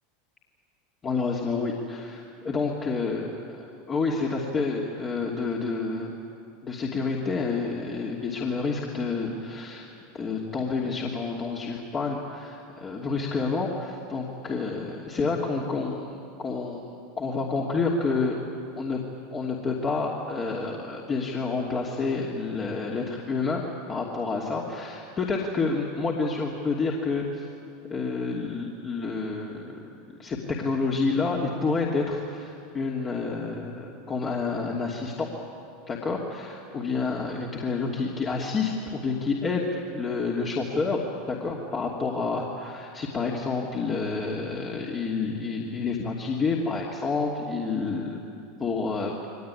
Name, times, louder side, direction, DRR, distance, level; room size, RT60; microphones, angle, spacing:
voice 1, 1.0-6.1 6.6-9.9 10.1-16.1 16.4-16.8 17.2-18.4 18.8-19.0 19.3-27.5 27.9-29.8 30.2-35.3 35.9-48.2 48.6-49.1, left 4 dB, 30° left, -2 dB, 2.8 m, -29 dB
23.0 x 19.5 x 10.0 m, 2.6 s
hypercardioid pair, 90°, 0 cm